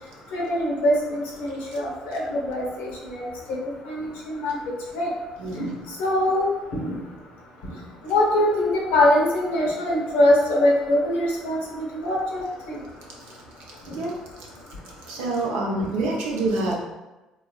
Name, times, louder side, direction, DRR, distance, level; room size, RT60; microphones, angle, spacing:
voice 1, 0.3-3.2 3.9-4.6 4.9-5.1 5.5-5.7 6.0-7.0 8.1-12.8, left 1 dB, 75° left, -2 dB, 0.7 m, -23 dB
voice 2, 5.4-5.8 13.8-14.1 14.4-14.5 15.1-16.8, right 2 dB, 80° right, -2 dB, 0.6 m, -27 dB
3.1 x 2.3 x 2.3 m, 1.1 s
hypercardioid pair, 65°, 3 cm